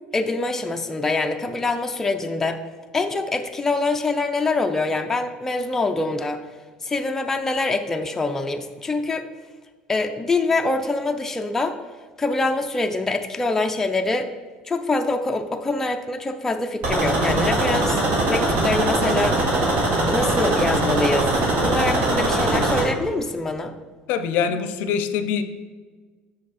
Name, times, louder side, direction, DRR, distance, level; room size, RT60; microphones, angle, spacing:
voice 1, 0.1-2.6 2.9-6.4 6.8-9.3 9.9-11.8 12.2-14.3 14.6-18.0 18.3-19.4 20.1-21.3 21.6-23.7, left 3 dB, 10° left, 5 dB, 0.4 m, -24 dB
sound 1, 16.8-22.8, right 2 dB, 55° right, 1.7 m, -21 dB
voice 2, 24.1-25.4, left 7 dB, 70° left, 9 dB, 0.5 m, -24 dB
6.2 x 5.0 x 4.1 m, 1.4 s
cardioid pair, 130°, 3 cm